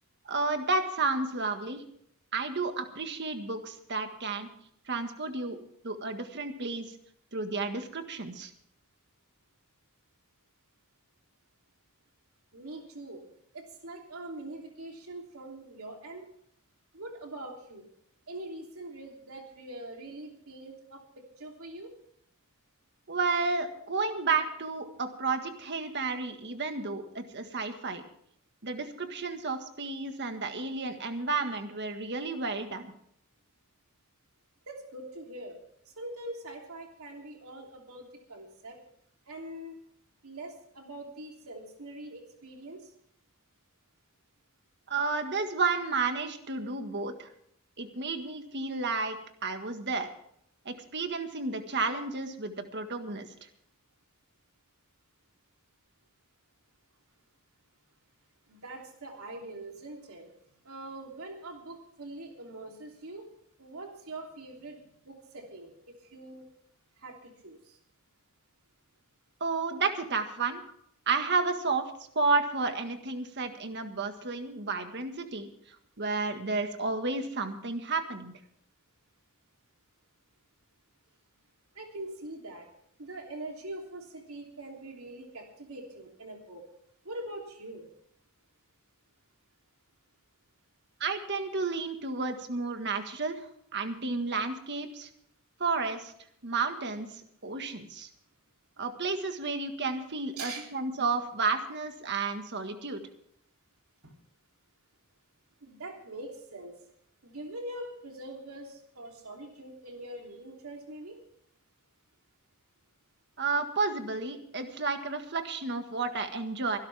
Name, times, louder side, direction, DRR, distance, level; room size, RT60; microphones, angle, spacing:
voice 1, 0.2-1.8 2.3-4.5 4.9-5.6 5.8-6.9 7.3-8.5 23.1-28.0 28.6-32.9 44.9-47.3 47.8-50.1 50.6-53.3 69.4-70.6 71.1-71.8 72.1-75.5 76.0-78.3 91.0-95.1 95.6-96.1 96.4-98.1 98.8-103.0 113.4-116.8, right 4 dB, 50° right, 7 dB, 1.6 m, -31 dB
voice 2, 12.5-13.2 13.5-16.3 16.9-17.9 18.3-21.9 34.7-35.6 36.0-38.8 39.3-39.8 40.2-42.9 58.5-60.3 60.6-63.3 63.6-65.7 66.0-66.4 67.0-67.8 81.7-82.7 83.0-86.6 87.0-87.9 100.4-100.7 104.0-104.1 105.6-106.7 107.2-111.2, right 1 dB, 75° right, 1 dB, 3.2 m, -43 dB
24.0 x 12.0 x 3.5 m, 0.68 s
head